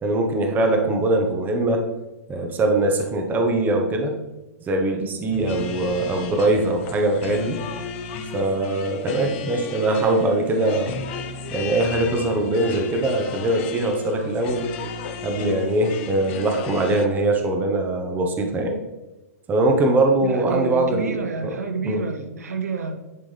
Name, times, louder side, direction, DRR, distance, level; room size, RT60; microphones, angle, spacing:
voice 1, 0.0-1.8 2.3-4.1 4.6-7.6 8.3-11.0 11.5-14.7 15.2-18.8 19.5-21.6 21.8-22.0, right 2 dB, 20° right, 3 dB, 1.1 m, -22 dB
sound 1, 5.3-17.1, left 5 dB, 50° left, 0.8 m, -34 dB
voice 2, 20.2-23.0, right 4 dB, 80° right, 6 dB, 0.9 m, -29 dB
11.0 x 3.8 x 3.3 m, 1.1 s
hypercardioid pair, 115°, 8 cm